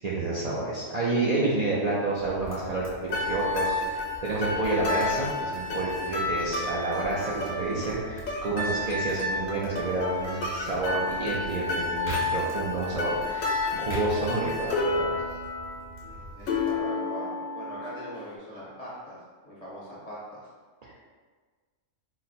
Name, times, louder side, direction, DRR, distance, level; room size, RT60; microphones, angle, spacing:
voice 1, 0.0-2.9 3.1-15.2, right 2 dB, 80° right, -6 dB, 0.3 m, -29 dB
sound 1, 2.1-16.8, right 2 dB, 15° right, 0.5 m, -43 dB
sound 2, 3.1-18.2, left 3 dB, 80° left, 1.1 m, -31 dB
voice 2, 16.0-19.2 19.4-20.5, equal, 30° left, -8 dB, 1.1 m, -41 dB
4.0 x 2.1 x 4.1 m, 1.5 s
omnidirectional pair, 1.4 m